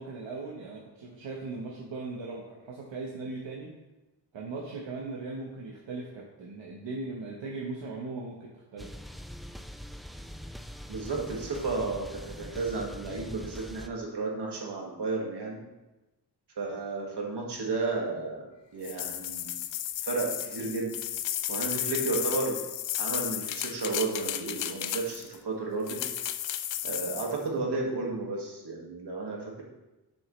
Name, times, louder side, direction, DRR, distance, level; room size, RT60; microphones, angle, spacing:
voice 1, 0.0-3.7 4.3-8.9, right 3 dB, 80° right, -3 dB, 1.2 m, -39 dB
sound 1, 8.8-13.9, equal, ahead, 0.3 m, -43 dB
voice 2, 10.9-15.6 16.6-18.5 18.7-19.5 20.0-20.9 21.5-22.6 23.0-26.0 26.8-29.6, right 3 dB, 65° right, -1 dB, 2.0 m, -33 dB
sound 2, 18.8-25.4 25.9-27.4, left 11 dB, 75° left, 0.6 m, -34 dB
10.0 x 6.3 x 3.2 m, 1.0 s
wide cardioid pair, 90°, 44 cm